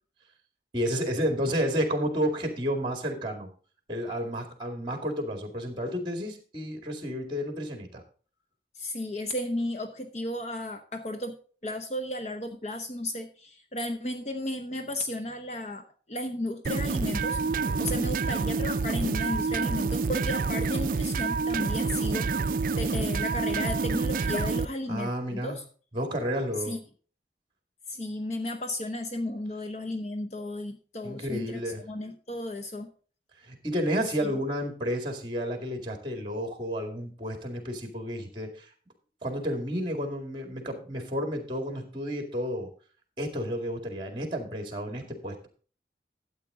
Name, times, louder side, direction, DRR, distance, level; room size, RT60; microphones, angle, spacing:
voice 1, 0.7-3.5 3.9-8.0 17.7-18.1 24.9-25.6 25.9-26.7 31.0-31.8 33.4-38.7 39.2-42.7 43.2-45.5, equal, 25° right, 4 dB, 2.1 m, -31 dB
voice 2, 8.8-11.4 11.6-22.3 22.8-25.6 26.7-26.8 27.9-32.9, left 1 dB, 40° left, 7 dB, 0.8 m, -34 dB
sound 1, 16.6-24.7, right 4 dB, 50° right, 0.4 m, -28 dB
12.5 x 8.2 x 3.7 m, 0.40 s
head